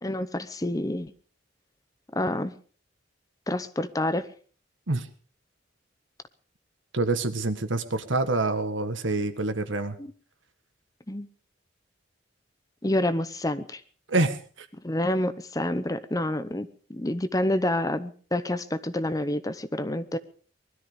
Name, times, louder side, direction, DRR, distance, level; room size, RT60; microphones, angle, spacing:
voice 1, 0.0-1.1 2.1-2.6 3.5-4.3 10.0-10.1 11.1-11.3 12.8-13.8 14.8-20.2, left 1 dB, 20° left, 13 dB, 0.8 m, -28 dB
voice 2, 6.9-10.0 14.1-14.7, right 2 dB, 85° right, 10 dB, 1.7 m, -26 dB
20.5 x 13.0 x 5.2 m, 0.43 s
head